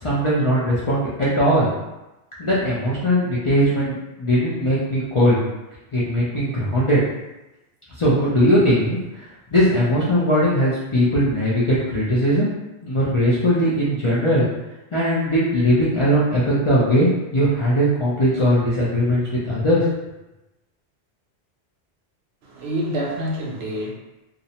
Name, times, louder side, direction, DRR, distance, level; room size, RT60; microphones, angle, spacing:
voice 1, 0.0-1.7 2.4-5.4 5.9-7.0 8.0-9.2 9.5-12.5 12.8-14.4 14.9-19.9, equal, 45° left, -8 dB, 0.4 m, -19 dB
voice 2, 22.4-23.9, equal, 80° right, -1 dB, 0.8 m, -27 dB
2.4 x 2.0 x 2.8 m, 0.99 s
omnidirectional pair, 1.1 m